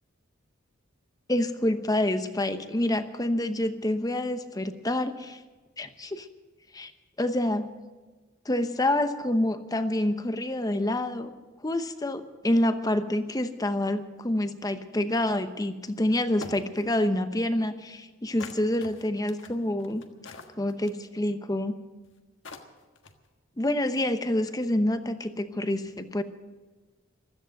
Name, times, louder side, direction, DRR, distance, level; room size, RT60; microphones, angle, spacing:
voice 1, 1.3-5.4 5.8-6.3 6.7-6.9 7.2-7.7 8.4-11.3 11.6-20.0 20.6-21.7 23.6-26.2, left 1 dB, 20° left, 9 dB, 0.9 m, -27 dB
sound 1, 15.8-15.9 16.4-16.8 18.4-21.0 22.0-22.1 22.4-23.3, left 3 dB, 65° left, 1.5 m, -43 dB
16.0 x 13.5 x 6.5 m, 1.3 s
head